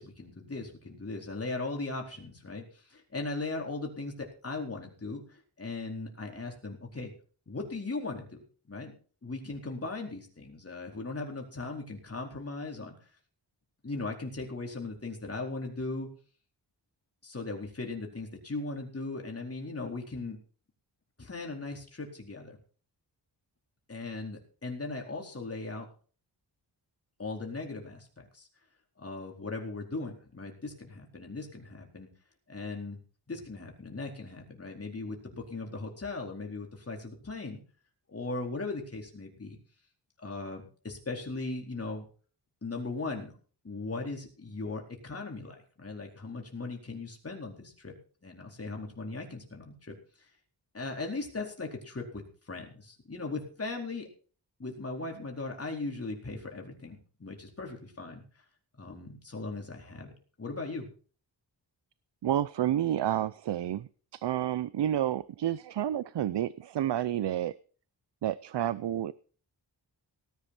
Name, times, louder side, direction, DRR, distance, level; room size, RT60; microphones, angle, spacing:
voice 1, 0.0-7.1 7.5-8.4 8.7-8.9 9.2-12.9 13.8-16.1 17.2-20.4 21.2-22.6 23.9-25.9 27.2-28.5 29.0-32.1 32.5-33.0 33.3-37.6 38.1-39.6 40.2-42.1 42.6-43.3 43.6-47.9 48.2-50.0 50.7-54.1 54.6-58.2 58.8-60.1 60.4-60.9, left 3 dB, 35° left, 4.2 m, -38 dB
voice 2, 62.2-67.5 68.2-69.1, right 11 dB, 75° right, 0.7 m, -30 dB
18.5 x 10.5 x 4.4 m
wide cardioid pair, 120°, 43 cm